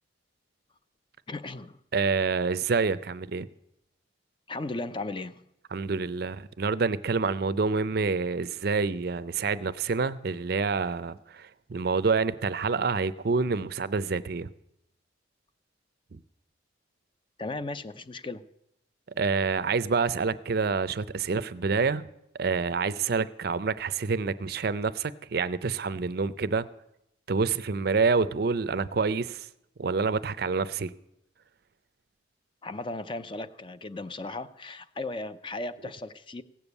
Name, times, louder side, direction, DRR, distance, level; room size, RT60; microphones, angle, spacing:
voice 1, 1.3-1.8 4.5-5.4 17.4-18.4 32.6-36.4, left 2 dB, 25° left, 0.5 m, -36 dB
voice 2, 1.9-3.5 5.7-14.5 16.1-16.2 19.2-22.1 22.4-26.7 27.3-29.5 29.8-30.9, right 4 dB, 55° right, 0.5 m, -27 dB
16.5 x 7.1 x 8.2 m
head